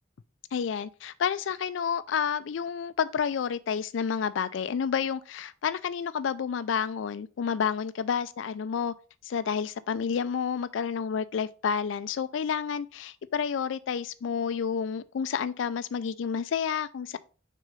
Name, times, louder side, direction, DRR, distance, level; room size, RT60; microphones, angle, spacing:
voice 1, 0.5-8.9 9.2-17.2, left 7 dB, 85° left, 0.4 m, -30 dB
6.2 x 3.8 x 5.2 m
head